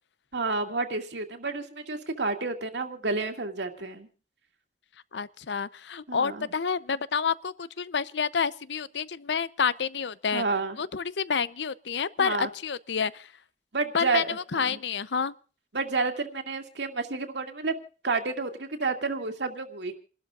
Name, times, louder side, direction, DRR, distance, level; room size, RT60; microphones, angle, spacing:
voice 1, 0.3-4.1 6.1-6.5 10.3-10.8 12.2-12.5 13.7-14.8 15.7-17.8 18.0-19.9, right 3 dB, 80° right, 2.2 m, -30 dB
voice 2, 5.1-10.4 10.8-13.3 13.9-14.2 14.5-15.3, left 6 dB, 80° left, 0.6 m, -29 dB
29.0 x 12.5 x 2.5 m
head